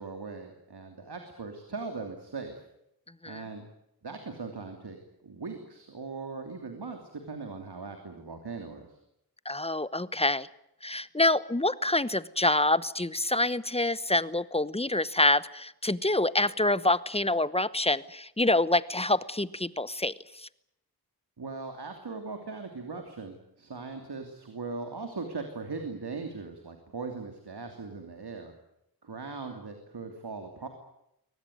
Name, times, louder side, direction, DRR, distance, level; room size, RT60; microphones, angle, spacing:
voice 1, 0.0-2.6 3.2-3.6 4.0-5.0 5.2-9.0 21.4-28.5 29.0-30.7, right 4 dB, 90° right, 5 dB, 3.0 m, -39 dB
voice 2, 9.4-10.5 10.8-20.5, left 2 dB, 15° left, 17 dB, 1.0 m, -26 dB
23.5 x 19.0 x 9.4 m, 0.80 s
wide cardioid pair, 55°, 38 cm